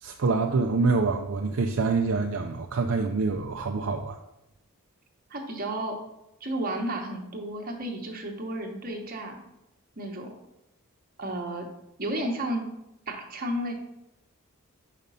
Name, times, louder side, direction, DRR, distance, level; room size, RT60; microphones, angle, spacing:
voice 1, 0.0-4.2, right 4 dB, 60° right, 3 dB, 0.4 m, -26 dB
voice 2, 5.3-6.0 6.4-9.4 10.0-10.3 11.2-11.7 12.0-12.6 13.1-13.7, right 1 dB, 40° right, 2 dB, 1.1 m, -32 dB
5.2 x 5.0 x 5.5 m, 0.88 s
head